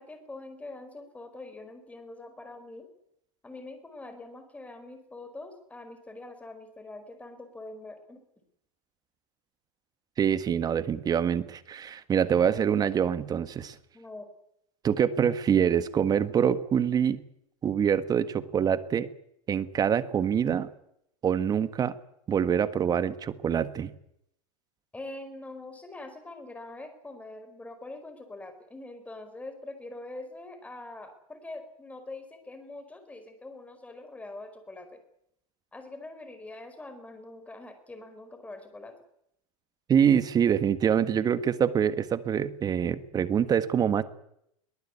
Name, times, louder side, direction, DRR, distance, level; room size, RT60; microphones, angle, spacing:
voice 1, 0.0-2.9 3.4-8.2 13.9-14.3 24.9-35.0 35.7-38.9, left 2 dB, 5° left, 8 dB, 4.8 m, -44 dB
voice 2, 10.2-13.7 14.8-17.2 17.6-19.1 19.5-20.7 21.2-22.0 22.3-23.9 39.9-44.0, right 8 dB, 20° right, 13 dB, 1.5 m, -25 dB
23.0 x 18.5 x 8.4 m, 0.75 s
supercardioid pair, 140°, 18 cm